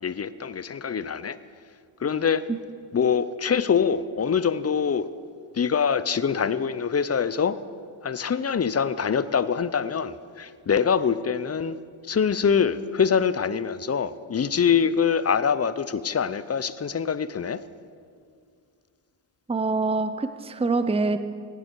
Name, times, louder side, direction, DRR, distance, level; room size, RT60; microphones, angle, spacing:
voice 1, 0.0-1.4 2.0-2.4 2.9-5.1 5.5-7.6 8.0-11.8 12.0-17.6, left 6 dB, 30° left, 0.6 m, -24 dB
voice 2, 19.5-21.2, right 3 dB, 10° right, 0.7 m, -25 dB
16.5 x 9.6 x 4.7 m
cardioid pair, 50°, 50 cm